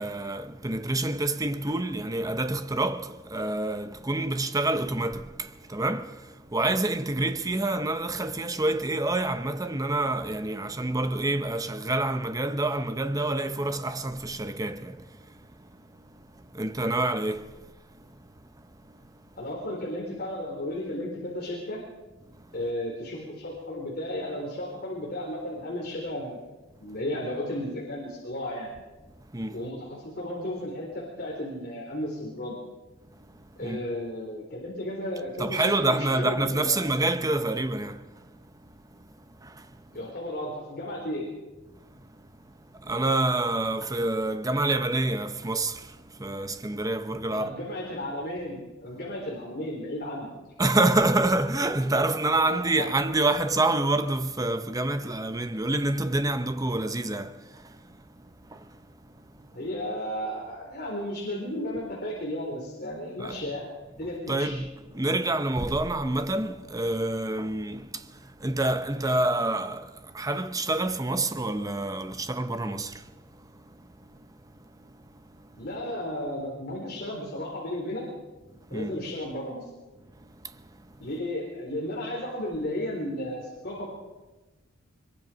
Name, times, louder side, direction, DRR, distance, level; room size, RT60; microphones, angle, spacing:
voice 1, 0.0-19.2 22.3-22.5 26.8-26.9 29.3-29.6 33.1-33.9 35.4-39.8 41.7-42.3 42.6-47.5 50.6-59.5 63.2-63.4 64.3-75.6 78.6-79.0 80.2-81.0, right 2 dB, 15° right, 0.8 m, -28 dB
voice 2, 19.4-21.8 22.5-26.4 26.8-28.7 29.5-32.6 33.6-36.8 39.9-41.3 47.3-50.3 52.5-52.9 59.5-63.6 64.0-64.6 75.6-78.0 78.7-79.7 81.0-83.9, left 1 dB, 45° left, 4.3 m, -34 dB
23.0 x 22.5 x 5.3 m
head